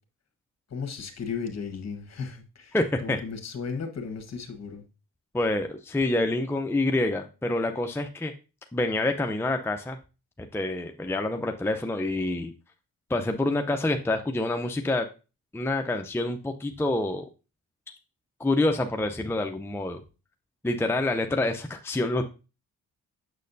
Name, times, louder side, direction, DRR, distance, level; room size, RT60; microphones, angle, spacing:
voice 1, 0.7-2.8 3.0-4.8, left 5 dB, 50° left, 5 dB, 1.4 m, -35 dB
voice 2, 2.7-3.2 5.3-8.3 8.7-10.0 10.4-12.5 13.1-15.0 15.5-17.3 18.4-20.0 20.6-22.2, left 2 dB, 5° left, 5 dB, 0.6 m, -27 dB
6.4 x 6.3 x 2.6 m, 0.31 s
cardioid pair, 70°, 34 cm